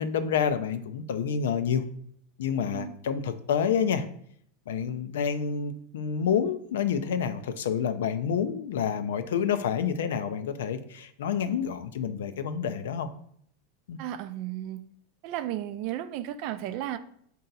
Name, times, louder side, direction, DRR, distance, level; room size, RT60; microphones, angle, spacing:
voice 1, 0.0-1.8 2.4-4.1 4.7-13.1 13.9-14.0, left 7 dB, 80° left, 11 dB, 0.4 m, -28 dB
voice 2, 14.0-14.8 15.2-17.0, right 12 dB, 55° right, 11 dB, 0.4 m, -34 dB
4.3 x 2.7 x 4.0 m, 0.65 s
hypercardioid pair, 110°, 0 cm